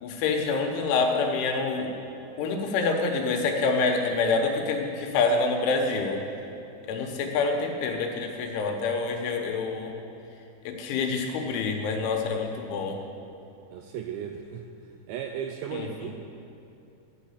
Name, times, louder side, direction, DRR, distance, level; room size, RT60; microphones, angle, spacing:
voice 1, 0.0-1.9 2.4-6.3 6.9-9.9 10.7-13.0 15.7-15.9, left 4 dB, 80° left, 2 dB, 3.4 m, -26 dB
voice 2, 13.7-14.6 15.1-16.1, right 8 dB, 85° right, 4 dB, 2.5 m, -35 dB
13.5 x 6.5 x 8.5 m, 2.7 s
omnidirectional pair, 5.6 m